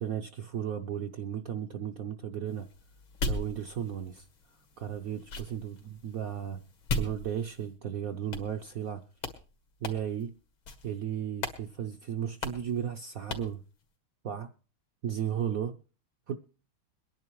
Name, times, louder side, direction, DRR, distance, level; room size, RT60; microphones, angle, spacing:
voice 1, 0.0-2.7 3.3-4.3 4.8-6.6 7.0-9.0 9.8-10.3 10.8-13.6 14.2-14.5 15.0-15.8 16.3-16.4, right 9 dB, 60° right, 0.9 m, -34 dB
sound 1, 2.5-7.8 8.3-8.9 9.2-9.4 9.8-10.3 10.7-11.0 11.4-11.6 11.9-12.0 12.4-12.7 13.3-13.6, left 2 dB, 85° left, 2.7 m, -38 dB
23.0 x 10.5 x 3.1 m
omnidirectional pair, 2.2 m